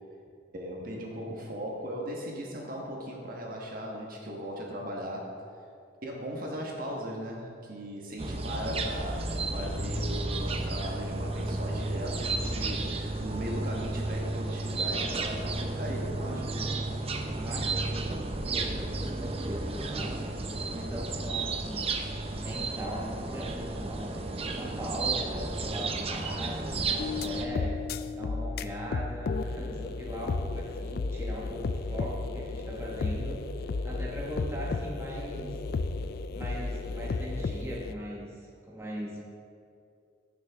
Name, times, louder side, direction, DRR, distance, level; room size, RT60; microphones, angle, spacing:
voice 1, 0.5-5.4 6.0-16.5, equal, 50° right, -1 dB, 1.3 m, -38 dB
sound 1, 8.2-27.5, right 2 dB, 30° right, 0.6 m, -32 dB
voice 2, 17.3-21.9 22.4-27.9 28.1-35.6 36.3-39.2, equal, 15° right, -4 dB, 1.3 m, -40 dB
sound 2, 27.0-37.9, left 3 dB, 55° left, 0.3 m, -33 dB
15.0 x 6.5 x 3.5 m, 2.4 s
head